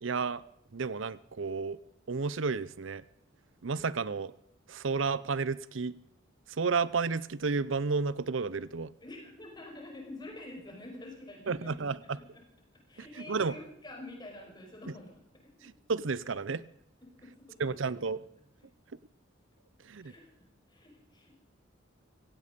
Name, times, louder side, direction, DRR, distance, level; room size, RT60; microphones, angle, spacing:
voice 1, 0.0-0.4 0.7-1.8 2.1-3.0 3.6-4.3 4.7-5.9 6.5-8.9 11.5-12.2 13.3-13.5 15.6-16.6 17.6-18.2 19.8-20.1, right 4 dB, 75° right, 19 dB, 0.7 m, -31 dB
voice 2, 9.0-11.7 12.2-12.4 12.9-15.2 17.0-17.7 20.0-20.3 20.7-21.3, left 2 dB, 20° left, 1 dB, 5.7 m, -47 dB
17.0 x 16.0 x 5.3 m, 0.74 s
head